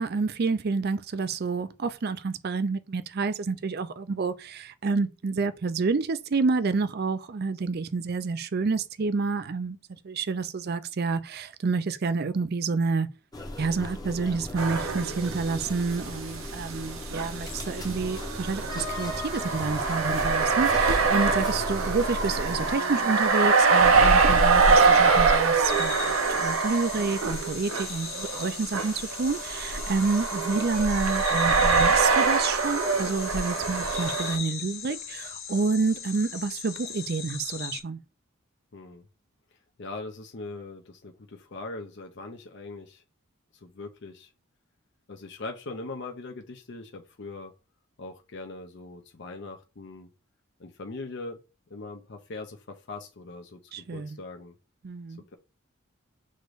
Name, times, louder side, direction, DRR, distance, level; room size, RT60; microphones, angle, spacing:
voice 1, 0.0-9.8 10.0-13.1 13.6-38.0 53.7-54.2 54.8-55.2, right 4 dB, 45° right, 0.4 m, -29 dB
sound 1, 13.3-22.7, left 1 dB, 20° left, 0.7 m, -37 dB
sound 2, 14.6-15.7 16.0-16.1 17.1-34.4, right 4 dB, 75° right, 0.8 m, -24 dB
sound 3, 25.6-37.8, left 8 dB, 75° left, 1.1 m, -38 dB
voice 2, 38.7-39.0 39.8-43.0 43.6-44.3 45.1-47.5 48.0-50.1 50.6-51.4 51.7-54.5, left 3 dB, 55° left, 0.6 m, -41 dB
6.3 x 2.6 x 3.1 m
head